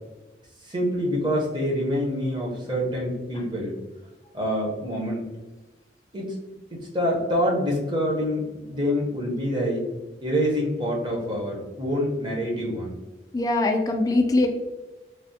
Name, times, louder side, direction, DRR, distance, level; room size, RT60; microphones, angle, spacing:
voice 1, 0.6-3.7 4.3-5.3 6.1-6.4 6.7-9.9 10.2-12.9, equal, 25° right, -2 dB, 0.7 m, -26 dB
voice 2, 13.3-14.5, left 2 dB, 20° left, 3 dB, 0.3 m, -21 dB
3.2 x 2.1 x 2.7 m, 1.1 s
head